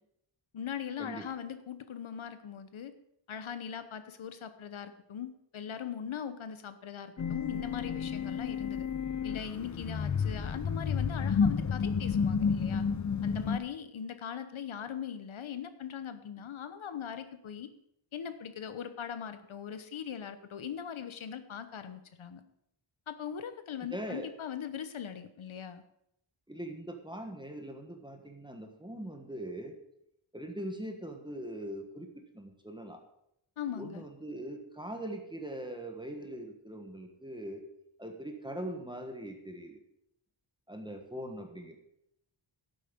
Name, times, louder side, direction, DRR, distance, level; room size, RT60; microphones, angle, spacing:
voice 1, 0.5-2.9 3.3-8.9 9.2-12.9 13.2-17.7 18.1-22.4 23.1-25.8 33.6-34.0, left 8 dB, 75° left, 11 dB, 1.1 m, -40 dB
sound 1, 7.2-13.6, left 6 dB, 35° left, 0.7 m, -31 dB
voice 2, 23.9-24.3 26.5-29.8 30.3-33.0 33.8-37.6 38.0-39.8 40.7-41.8, right 1 dB, 10° right, 3 dB, 1.4 m, -41 dB
11.5 x 8.5 x 5.3 m, 0.78 s
wide cardioid pair, 115°, 49 cm